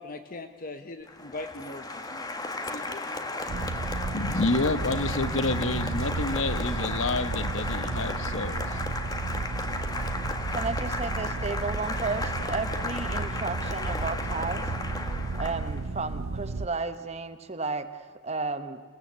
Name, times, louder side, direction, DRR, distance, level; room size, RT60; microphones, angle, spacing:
voice 1, 0.0-1.8 2.1-2.2 2.5-3.0, left 2 dB, 45° left, 1.0 m, -40 dB
Applause, 1.1-15.9, left 2 dB, 20° left, 1.4 m, -35 dB
sound 1, 3.5-16.7, right 3 dB, 85° right, 0.7 m, -33 dB
voice 2, 4.1-8.8, left 3 dB, 70° left, 1.0 m, -29 dB
voice 3, 10.5-14.7 15.1-18.8, right 3 dB, 30° right, 1.0 m, -33 dB
28.0 x 17.0 x 8.1 m
head